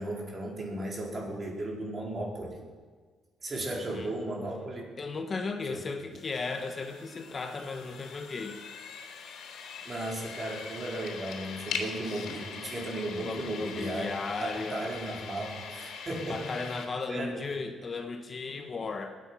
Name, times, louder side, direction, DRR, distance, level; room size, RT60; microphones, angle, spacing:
voice 1, 0.0-2.6 3.4-4.9 5.7-5.8 6.1-6.2 9.8-14.1 14.4-16.5 17.1-17.4, right 1 dB, 35° right, -2 dB, 4.6 m, -35 dB
voice 2, 3.7-4.1 5.0-8.6 13.3-14.9 16.3-19.1, left 4 dB, 40° left, 5 dB, 1.4 m, -35 dB
sound 1, 6.1-16.9, left 6 dB, 75° left, 3.1 m, -42 dB
21.5 x 9.3 x 5.8 m, 1.5 s
cardioid pair, 80°, 0 cm